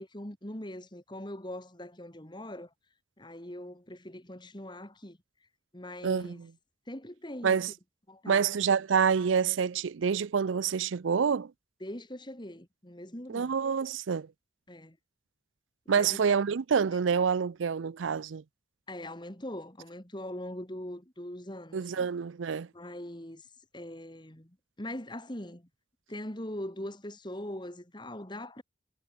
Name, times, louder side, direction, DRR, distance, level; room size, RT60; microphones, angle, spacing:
voice 1, 0.0-2.7 3.2-5.2 5.7-6.4 6.9-7.6 8.1-8.5 11.8-13.5 14.7-15.0 16.0-16.2 18.9-22.1 22.7-23.5 23.7-25.7 26.1-28.6, left 1 dB, 25° left, 2.8 m, -41 dB
voice 2, 6.0-6.5 7.4-7.7 8.3-11.5 13.3-14.3 15.9-18.4 21.7-22.7, right 6 dB, 90° right, 0.5 m, -27 dB
head